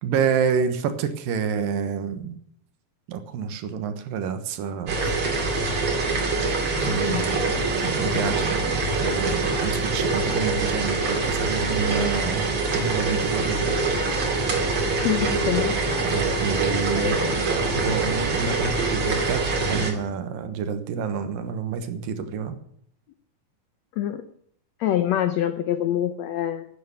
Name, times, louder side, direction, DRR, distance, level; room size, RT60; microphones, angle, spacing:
voice 1, 0.0-2.4 3.1-5.0 6.8-7.3 7.8-12.5 12.7-13.8 16.0-17.4 17.7-22.6, right 6 dB, 75° right, 9 dB, 2.9 m, -28 dB
sound 1, 4.9-19.9, right 3 dB, 40° right, 3.1 m, -24 dB
voice 2, 7.1-7.4 15.0-15.8 16.3-16.6 16.9-17.4 20.0-20.1 24.0-24.2 24.8-26.7, left 11 dB, 85° left, 10 dB, 1.5 m, -26 dB
11.5 x 9.3 x 9.3 m, 0.66 s
omnidirectional pair, 4.1 m